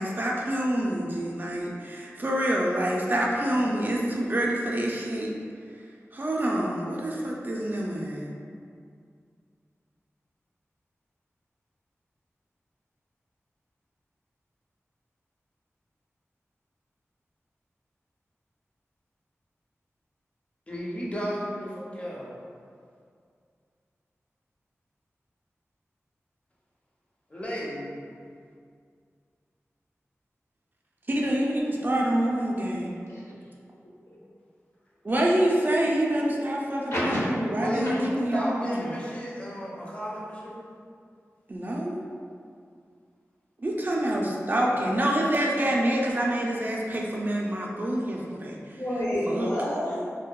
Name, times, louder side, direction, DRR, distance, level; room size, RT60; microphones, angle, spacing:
voice 1, 0.0-5.3 6.1-8.3 31.1-33.0 35.0-38.0 38.2-38.9 41.5-42.1 43.6-48.6 49.3-49.5, right 1 dB, 40° right, -3 dB, 0.3 m, -27 dB
voice 2, 20.7-22.4 27.3-28.0 37.5-40.5 44.0-44.1 45.2-45.3, equal, 25° left, -5 dB, 0.5 m, -33 dB
voice 3, 36.9-37.3 37.8-38.0 48.8-50.1, equal, 65° left, -8 dB, 0.8 m, -28 dB
2.6 x 2.2 x 2.2 m, 2.3 s
wide cardioid pair, 55°, 5 cm